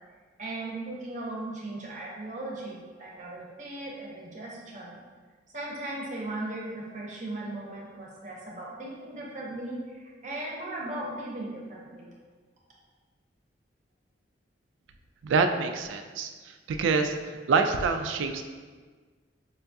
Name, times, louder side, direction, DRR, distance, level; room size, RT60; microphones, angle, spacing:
voice 1, 0.4-5.0 5.5-12.1, right 2 dB, 40° right, -4 dB, 0.7 m, -37 dB
voice 2, 15.2-17.2 17.5-18.4, right 4 dB, 90° right, 7 dB, 0.3 m, -26 dB
5.5 x 2.2 x 2.7 m, 1.5 s
head